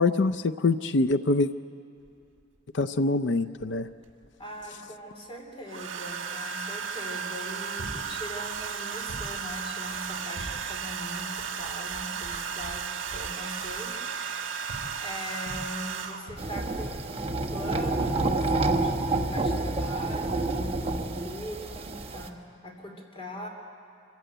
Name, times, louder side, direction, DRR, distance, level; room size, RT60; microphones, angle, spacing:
voice 1, 0.0-1.5 2.7-3.9, left 3 dB, 65° left, 9 dB, 0.5 m, -24 dB
Domestic sounds home sounds, 2.1-2.2 3.6-4.3 5.7-16.4 17.7-17.9 18.2-18.6, right 6 dB, 80° right, 1.4 m, -35 dB
voice 2, 4.4-12.8 13.1-23.5, left 1 dB, 30° left, 2 dB, 2.9 m, -41 dB
sound 1, 7.8-8.3 8.7-8.8 9.1-9.6 10.4-10.9 14.7-15.2 15.5-15.9 16.3-16.7 19.1-19.2, right 1 dB, 80° left, 2.9 m, -42 dB
sound 2, 16.4-22.3, right 2 dB, 30° right, 1.0 m, -28 dB
25.0 x 15.0 x 9.0 m, 2.4 s
head